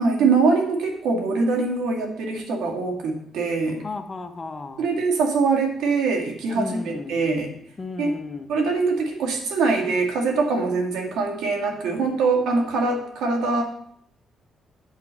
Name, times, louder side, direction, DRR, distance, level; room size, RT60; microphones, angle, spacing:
voice 1, 0.0-3.8 4.8-7.5 8.0-8.2 8.5-13.6, right 4 dB, 85° right, 2 dB, 1.9 m, -23 dB
voice 2, 3.8-4.9 6.5-7.2 7.8-8.5, left 3 dB, 30° left, 7 dB, 1.0 m, -34 dB
8.3 x 4.7 x 7.4 m, 0.70 s
cardioid pair, 90°, 0 cm